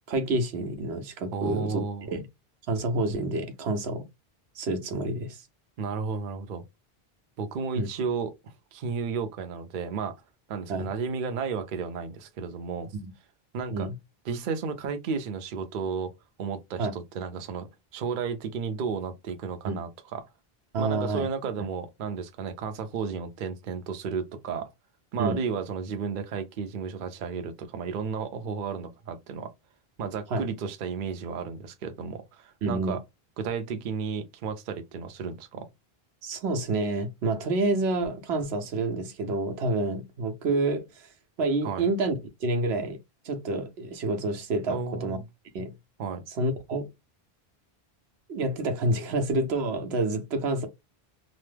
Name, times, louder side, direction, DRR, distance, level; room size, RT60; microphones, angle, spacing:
voice 1, 0.1-1.8 2.1-2.3 2.7-4.1 4.5-5.4 7.7-7.9 10.7-10.9 12.9-13.1 13.7-13.9 16.8-16.9 19.7-19.8 20.7-21.3 25.2-25.4 30.3-30.4 32.6-33.0 36.2-41.1 41.4-43.0 43.2-45.2 45.5-45.7 46.3-46.8 48.3-50.7, right 2 dB, 85° right, 1.0 m, -28 dB
voice 2, 1.3-2.1 5.8-6.6 7.4-10.2 10.5-12.9 13.5-13.9 14.3-16.1 16.4-20.2 20.8-24.7 25.1-29.5 30.0-33.0 33.4-35.7 41.6-41.8 44.7-45.2 46.0-46.2, right 5 dB, 60° right, 0.6 m, -33 dB
3.0 x 2.0 x 3.2 m
omnidirectional pair, 1.0 m